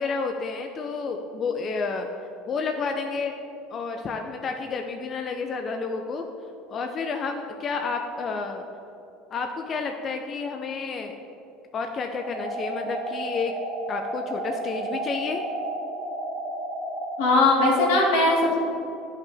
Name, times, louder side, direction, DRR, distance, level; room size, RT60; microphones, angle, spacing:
voice 1, 0.0-2.1 2.5-3.3 3.7-6.2 6.7-8.7 9.3-11.2 11.7-13.5 13.9-15.4, left 4 dB, 35° left, 4 dB, 0.5 m, -30 dB
sound 1, 12.1-17.2, right 1 dB, 40° right, 1.6 m, -32 dB
voice 2, 17.2-18.6, left 2 dB, 90° left, -3 dB, 1.9 m, -19 dB
11.0 x 5.5 x 3.4 m, 2.7 s
supercardioid pair, 125°, 0 cm